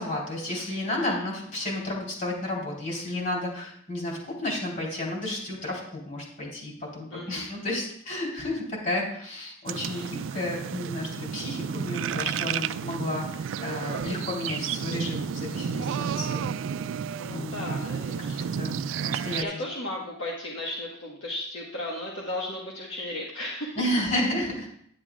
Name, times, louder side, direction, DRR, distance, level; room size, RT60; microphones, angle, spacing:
voice 1, 0.0-16.5 17.3-17.7 18.3-19.6 23.8-24.7, left 1 dB, 40° left, -3 dB, 3.6 m, -32 dB
voice 2, 7.1-7.5 9.9-10.1 17.2-18.5 18.8-19.0 19.4-23.8, left 1 dB, 65° left, -4 dB, 1.5 m, -35 dB
sound 1, 9.7-19.4, right 7 dB, 70° right, 0.3 m, -32 dB
10.5 x 9.9 x 2.5 m, 0.66 s
head